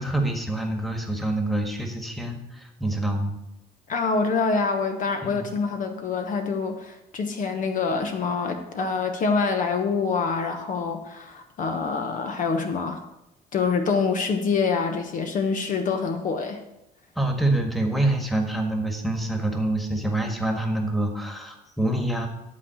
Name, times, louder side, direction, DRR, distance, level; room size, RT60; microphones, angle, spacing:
voice 1, 0.0-3.4 5.2-5.5 17.1-22.3, right 1 dB, ahead, 3 dB, 1.6 m, -26 dB
voice 2, 3.9-13.0 13.5-16.6, left 4 dB, 50° left, 5 dB, 1.1 m, -26 dB
11.0 x 4.0 x 7.7 m, 0.89 s
cardioid pair, 110°, 17 cm